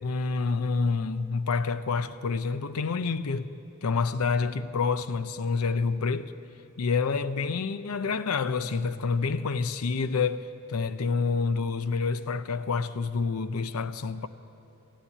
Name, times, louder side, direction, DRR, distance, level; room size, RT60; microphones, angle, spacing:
voice 1, 0.0-3.5 3.8-6.3 6.8-14.3, left 4 dB, 80° left, 0.5 m, -28 dB
15.0 x 9.9 x 9.6 m
head